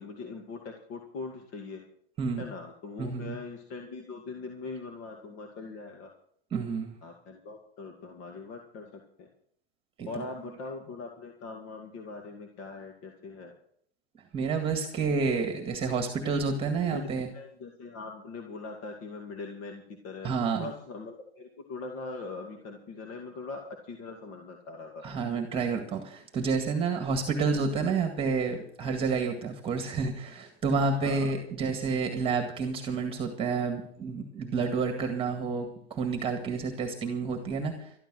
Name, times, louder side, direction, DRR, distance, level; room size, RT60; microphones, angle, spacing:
voice 1, 0.0-1.8 2.4-6.1 7.0-9.3 10.1-13.5 16.7-17.1 17.3-20.3 20.6-25.0 30.9-31.3, left 3 dB, 40° left, 3 dB, 2.3 m, -41 dB
voice 2, 3.0-3.4 6.5-6.9 10.0-10.1 14.3-17.3 20.2-20.7 25.0-37.9, right 4 dB, 15° right, 5 dB, 1.9 m, -29 dB
13.0 x 13.0 x 6.2 m, 0.63 s
supercardioid pair, 150°, 33 cm